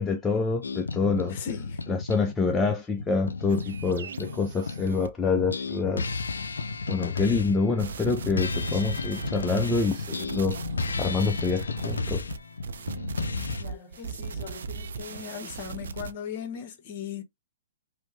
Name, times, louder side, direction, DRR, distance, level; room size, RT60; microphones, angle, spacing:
voice 1, 0.0-1.4 1.9-6.0 6.9-10.6 11.0-12.3, left 4 dB, 15° left, 0.4 m, -26 dB
sound 1, 0.6-5.0 5.4-13.6, left 4 dB, 85° left, 0.4 m, -33 dB
voice 2, 1.3-1.8 13.6-17.2, left 8 dB, 45° left, 0.9 m, -38 dB
sound 2, 3.5-5.1 7.6-16.1, right 5 dB, 70° right, 0.4 m, -38 dB
3.1 x 2.0 x 3.0 m
hypercardioid pair, 130°, 0 cm